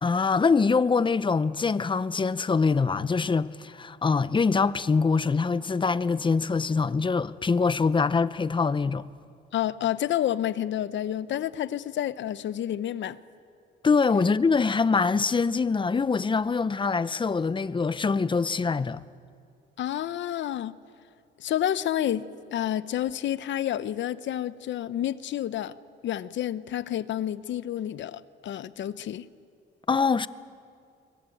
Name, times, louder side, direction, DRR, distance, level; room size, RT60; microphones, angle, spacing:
voice 1, 0.0-9.0 13.8-19.0 29.9-30.3, left 4 dB, 25° left, 0.7 m, -24 dB
voice 2, 9.5-13.2 19.8-20.7 21.4-25.7 26.0-29.3, left 11 dB, 70° left, 0.8 m, -29 dB
22.5 x 22.0 x 8.6 m
cardioid pair, 90°, 20 cm